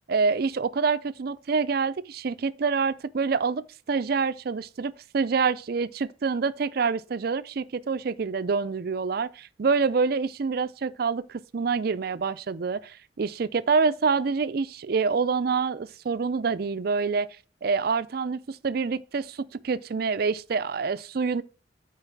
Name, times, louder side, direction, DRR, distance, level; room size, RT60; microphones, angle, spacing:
voice 1, 0.1-17.3 17.6-21.4, right 5 dB, 55° right, 0.4 m, -26 dB
8.9 x 4.7 x 5.9 m
head